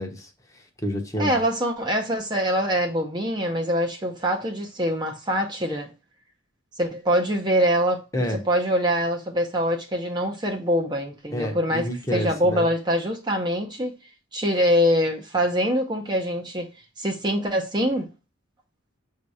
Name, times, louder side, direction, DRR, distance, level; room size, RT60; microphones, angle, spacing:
voice 1, 0.0-1.4 8.1-8.4 11.3-12.7, equal, 15° left, 0.9 m, -29 dB
voice 2, 1.2-5.9 6.8-8.0 8.4-13.9 14.3-16.7 17.0-18.1, equal, 20° right, 0.7 m, -24 dB
7.4 x 2.8 x 4.7 m
head